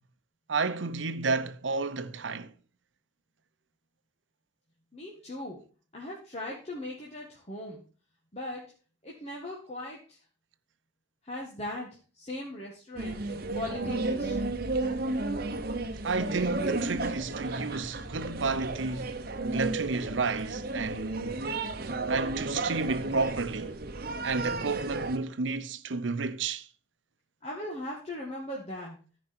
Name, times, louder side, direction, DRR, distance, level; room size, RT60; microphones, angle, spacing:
voice 1, 0.5-2.5 16.0-19.1 19.4-21.5 22.1-23.7 24.2-26.7, right 4 dB, 85° right, 0.8 m, -31 dB
voice 2, 4.9-5.6 5.9-7.8 8.3-8.7 9.0-10.2 11.2-13.2 13.5-14.5 27.4-29.0, left 1 dB, 35° left, 1.9 m, -39 dB
sound 1, 13.0-25.2, right 2 dB, 55° right, 1.0 m, -33 dB
14.0 x 5.0 x 4.3 m
head